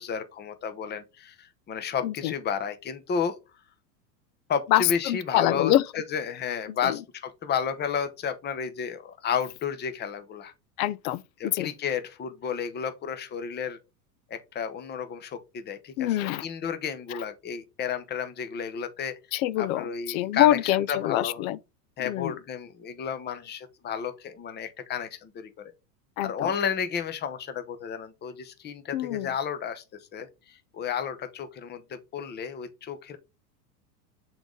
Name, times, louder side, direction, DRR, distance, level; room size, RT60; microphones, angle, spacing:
voice 1, 0.0-3.4 4.5-5.7 6.1-10.5 11.4-13.8 14.3-19.1 19.6-20.6 20.9-21.4 22.0-25.7 26.2-29.8 30.1-33.2, left 7 dB, 20° left, 0.8 m, -32 dB
voice 2, 4.7-5.8 6.8-7.0 10.8-11.7 16.0-16.4 17.1-17.2 19.3-21.6 22.0-22.4 26.2-26.5 28.9-29.3, left 14 dB, 55° left, 0.6 m, -25 dB
6.8 x 4.0 x 3.7 m
supercardioid pair, 125°, 49 cm